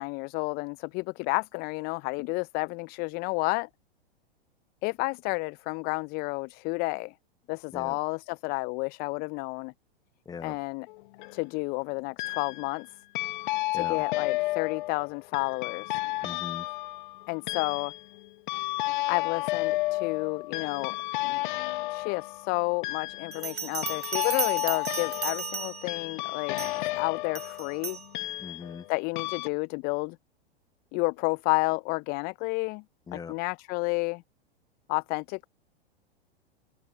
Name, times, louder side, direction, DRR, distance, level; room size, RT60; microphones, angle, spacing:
voice 1, 0.0-3.7 4.8-7.1 7.5-9.7 10.4-10.9 11.3-12.9 13.8-15.9 17.3-17.9 19.1-21.0 21.2-21.5 21.9-28.0 28.9-30.2 30.9-32.8 33.1-34.2 34.9-35.5, left 29 dB, 30° left, 0.5 m, -31 dB
voice 2, 10.3-10.6 13.7-14.0 16.2-16.7 28.4-28.8 33.1-33.3, left 6 dB, 10° left, 0.9 m, -40 dB
sound 1, 10.9-11.4 12.2-12.8 13.1-28.9 29.2-29.5, left 20 dB, 50° left, 1.4 m, -32 dB
Bell, 23.3-26.0 26.6-26.9 27.4-28.1, right 6 dB, 80° right, 1.2 m, -35 dB
open air
figure-of-eight pair, 100°, 31 cm